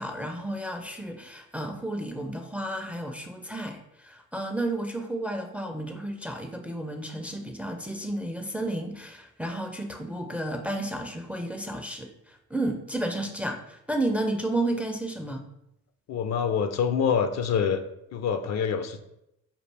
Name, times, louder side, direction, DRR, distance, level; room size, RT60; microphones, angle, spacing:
voice 1, 0.0-15.4, right 1 dB, 5° right, 5 dB, 0.4 m, -32 dB
voice 2, 16.1-17.8 18.1-19.0, left 7 dB, 60° left, 8 dB, 0.5 m, -26 dB
5.2 x 2.4 x 3.3 m, 0.82 s
cardioid pair, 90°, 30 cm